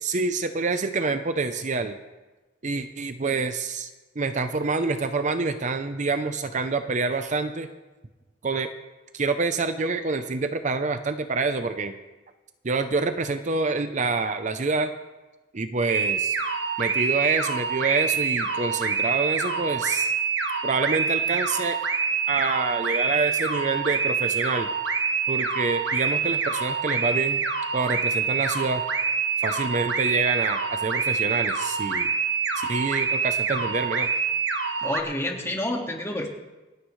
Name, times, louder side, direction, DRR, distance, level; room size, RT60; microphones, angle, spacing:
voice 1, 0.0-2.0 2.6-3.9 4.2-7.7 8.4-8.7 9.1-11.9 12.6-14.9 15.5-16.4 16.8-20.1 20.6-21.8 22.3-24.7 25.3-27.4 27.7-28.8 29.4-32.1 32.6-34.1, right 4 dB, 45° right, 8 dB, 0.7 m, -27 dB
sound 1, 15.9-35.0, right 5 dB, 80° right, 1.4 m, -26 dB
voice 2, 34.8-36.3, left 1 dB, 15° left, 1 dB, 1.9 m, -29 dB
27.0 x 9.7 x 3.2 m, 1.2 s
head